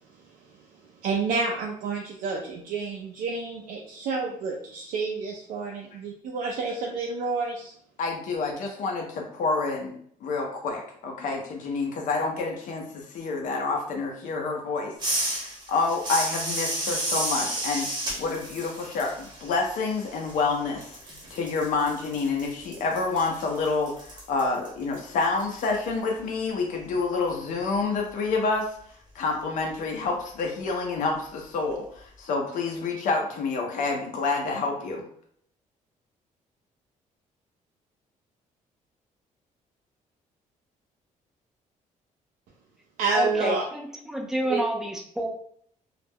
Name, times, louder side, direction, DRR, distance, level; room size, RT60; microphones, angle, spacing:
voice 1, 0.1-7.7 43.0-43.6 44.5-44.6, right 4 dB, 90° right, -1 dB, 0.5 m, -29 dB
voice 2, 8.0-9.9 10.2-17.9 18.2-28.8 29.1-35.0, left 3 dB, 70° left, 1 dB, 0.6 m, -28 dB
sound 1, 15.0-20.5 20.8-25.7, right 1 dB, 35° right, 0.9 m, -32 dB
voice 3, 43.1-45.3, equal, 5° right, 0 dB, 0.5 m, -29 dB
2.4 x 2.1 x 3.4 m, 0.63 s
cardioid pair, 150°, 14 cm